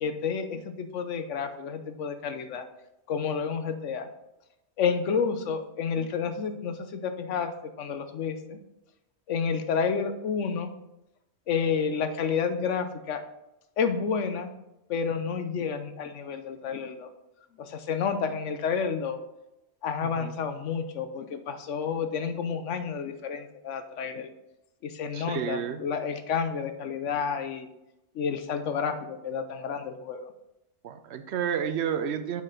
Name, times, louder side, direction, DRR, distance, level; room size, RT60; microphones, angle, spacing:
voice 1, 0.0-2.6 3.1-4.1 4.8-7.5 7.8-8.6 9.3-10.7 11.5-13.2 13.8-14.5 14.9-17.1 17.6-19.2 19.8-24.3 24.8-27.7 28.1-30.2, left 6 dB, 90° left, 8 dB, 1.1 m, -30 dB
voice 2, 20.0-20.4 25.1-25.8 30.8-32.4, right 8 dB, 70° right, 10 dB, 0.9 m, -31 dB
7.0 x 4.6 x 4.9 m, 0.92 s
omnidirectional pair, 1.2 m